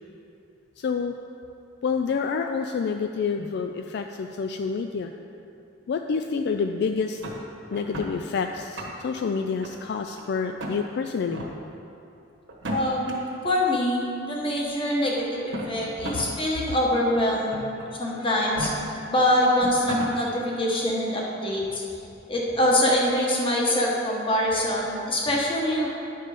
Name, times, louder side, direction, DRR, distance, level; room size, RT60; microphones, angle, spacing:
voice 1, 0.8-1.1 1.8-5.1 5.9-7.2 7.7-11.5, left 5 dB, 60° left, 5 dB, 0.3 m, -28 dB
sound 1, 7.2-8.1 8.6-9.2 9.6-10.2 10.6-10.8 11.3-11.5 12.5-13.1 14.2-14.3 15.3-16.3 16.7-16.8 17.5-17.9 18.4-18.7 19.3-19.4 19.6-20.1, right 1 dB, 70° right, 1.3 m, -34 dB
voice 2, 12.7-13.1 13.4-17.6 17.9-18.7 19.1-21.8 22.3-25.9, left 1 dB, 30° left, -3 dB, 1.4 m, -24 dB
10.0 x 5.5 x 5.0 m, 2.7 s
head